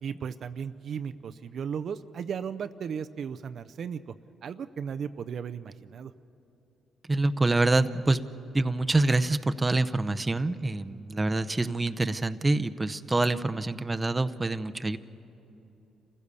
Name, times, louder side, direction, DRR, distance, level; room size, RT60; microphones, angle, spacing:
voice 1, 0.0-4.1 4.4-6.1, right 7 dB, 60° right, 11 dB, 0.5 m, -35 dB
voice 2, 7.1-8.2 8.5-15.0, right 2 dB, 20° right, 10 dB, 0.7 m, -26 dB
27.5 x 15.5 x 6.9 m, 2.9 s
cardioid pair, 90°, 0 cm